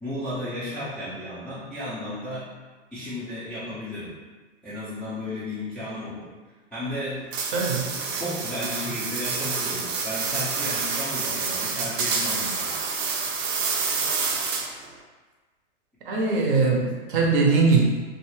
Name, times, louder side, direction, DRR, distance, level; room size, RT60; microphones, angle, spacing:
voice 1, 0.0-2.5 2.9-4.1 4.6-6.3 6.7-7.2 7.9-12.8 14.0-14.1, left 1 dB, 5° left, -15 dB, 0.4 m, -34 dB
sound 1, 7.3-14.9, right 5 dB, 85° right, 0.6 m, -28 dB
voice 2, 7.5-7.9 16.1-17.8, right 4 dB, 45° right, -1 dB, 0.6 m, -21 dB
2.4 x 2.3 x 3.1 m, 1.3 s
hypercardioid pair, 135°, 37 cm